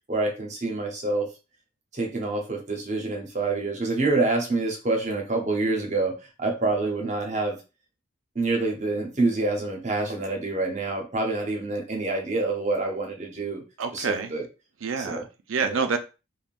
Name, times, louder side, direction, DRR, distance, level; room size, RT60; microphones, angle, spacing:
voice 1, 0.1-1.3 1.9-7.6 8.3-13.6 13.9-14.4 15.0-15.2 15.6-15.8, right 3 dB, 35° right, 2 dB, 0.7 m, -27 dB
voice 2, 13.8-14.3 14.8-16.0, right 5 dB, 85° right, 8 dB, 0.5 m, -27 dB
3.5 x 2.1 x 2.4 m, 0.30 s
head